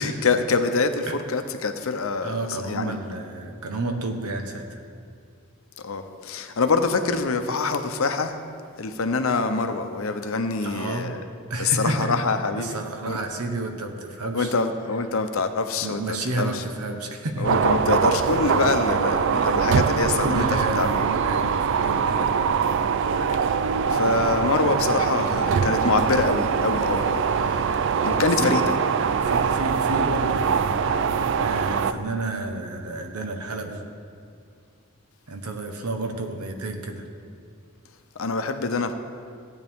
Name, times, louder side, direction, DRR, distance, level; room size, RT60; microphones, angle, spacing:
voice 1, 0.0-3.0 5.8-8.4 8.8-11.2 11.6-12.8 13.1-13.2 14.3-16.6 17.4-20.4 20.8-21.1 23.9-27.7 28.0-28.6 38.2-38.9, left 4 dB, 65° left, 8 dB, 0.7 m, -25 dB
voice 2, 2.2-4.8 10.6-11.1 11.5-12.2 12.6-14.5 15.8-17.5 19.3-19.6 20.2-22.3 24.2-24.3 24.6-24.7 25.2-25.3 28.1-28.6 29.2-31.0 31.4-33.8 35.3-37.1, right 2 dB, 90° right, 5 dB, 1.1 m, -31 dB
sound 1, 17.4-31.9, right 6 dB, 55° right, 0.3 m, -23 dB
15.5 x 8.7 x 3.6 m, 2.3 s
head